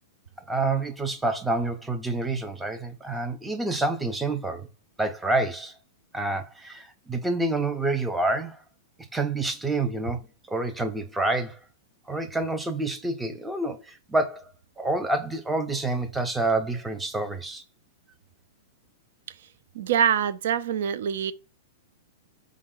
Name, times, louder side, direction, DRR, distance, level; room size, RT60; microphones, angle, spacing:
voice 1, 0.5-4.7 5.0-5.7 6.1-8.6 9.1-10.2 10.5-11.6 12.1-14.5 14.8-17.6, right 2 dB, 5° right, 0.4 m, -28 dB
voice 2, 19.7-21.3, right 8 dB, 65° right, 0.4 m, -24 dB
4.7 x 2.1 x 3.7 m
hypercardioid pair, 155°, 0 cm